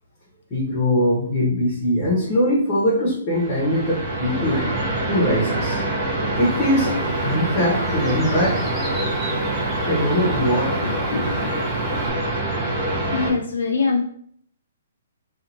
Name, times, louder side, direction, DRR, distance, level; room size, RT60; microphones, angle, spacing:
voice 1, 0.5-4.6 5.1-5.8 6.4-8.6 9.8-10.8, equal, 25° left, -5 dB, 1.0 m, -21 dB
sound 1, 3.3-13.3, right 1 dB, 25° right, 0.9 m, -25 dB
Bird, 6.4-12.1, equal, 5° right, 0.4 m, -37 dB
voice 2, 10.7-11.7 13.1-14.0, left 4 dB, 75° left, 1 dB, 0.4 m, -24 dB
2.8 x 2.4 x 2.8 m, 0.62 s
hypercardioid pair, 160°, 0 cm